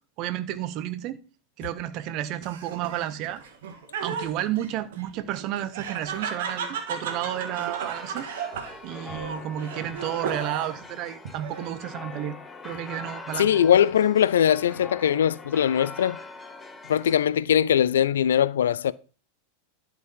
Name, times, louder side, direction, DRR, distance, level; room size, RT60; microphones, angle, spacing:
voice 1, 0.2-1.2 1.6-3.4 4.0-8.3 8.8-12.4 12.6-13.5, right 12 dB, 40° right, 0.9 m, -31 dB
Laughter, 2.4-10.8 11.2-11.9, right 6 dB, 55° right, 1.7 m, -35 dB
sound 1, 6.9-17.3, left 3 dB, 15° left, 1.1 m, -43 dB
voice 2, 13.4-16.2 16.9-18.9, left 9 dB, 65° left, 0.4 m, -21 dB
11.5 x 5.0 x 5.5 m
figure-of-eight pair, 90°, 0 cm